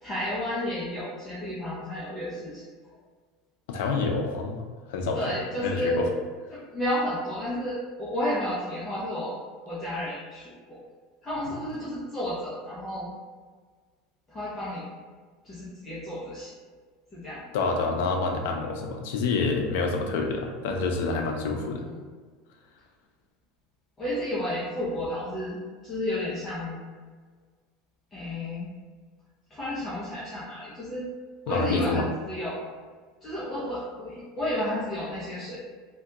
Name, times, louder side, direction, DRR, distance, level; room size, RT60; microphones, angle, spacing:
voice 1, 0.0-2.7 5.1-6.0 6.5-9.4 9.6-10.8 11.2-13.1 14.3-14.9 15.4-16.5 17.1-17.4 21.9-22.0 24.0-25.6 25.8-26.8 28.1-28.7 29.5-31.1 31.5-32.7 33.2-35.6, left 1 dB, 15° left, -9 dB, 0.5 m, -32 dB
voice 2, 3.7-4.6 4.9-5.2 5.6-6.1 17.5-21.9 31.5-32.1, left 3 dB, 75° left, 2 dB, 0.5 m, -27 dB
2.7 x 2.2 x 3.5 m, 1.5 s
cardioid pair, 175°, 0 cm